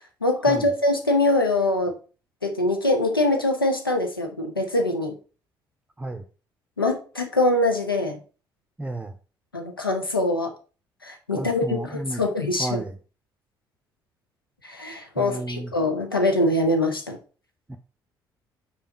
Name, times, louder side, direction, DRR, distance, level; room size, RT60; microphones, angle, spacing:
voice 1, 0.2-2.0 2.4-5.2 6.8-8.2 9.5-10.5 11.0-12.8 14.6-17.2, left 2 dB, 90° left, 5 dB, 0.8 m, -23 dB
voice 2, 8.8-9.2 11.3-12.2 12.6-13.0 15.2-15.7 17.7-17.8, right 2 dB, 10° right, 6 dB, 0.7 m, -32 dB
5.7 x 4.2 x 5.0 m, 0.36 s
figure-of-eight pair, 45°, 12 cm